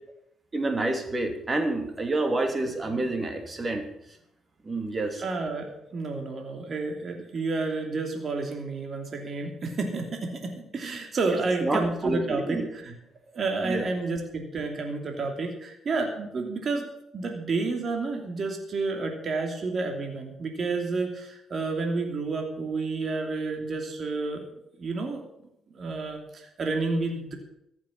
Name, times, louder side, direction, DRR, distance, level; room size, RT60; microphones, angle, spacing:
voice 1, 0.5-3.9 4.6-5.2 11.6-12.7 13.6-13.9, right 2 dB, 25° right, 5 dB, 2.8 m, -28 dB
voice 2, 5.2-12.6 12.8-12.9 13.3-16.9 17.1-24.4 24.8-25.2 25.7-27.3, right 3 dB, 45° right, 3 dB, 2.9 m, -30 dB
15.0 x 7.5 x 8.6 m, 0.79 s
cardioid pair, 90°, 0 cm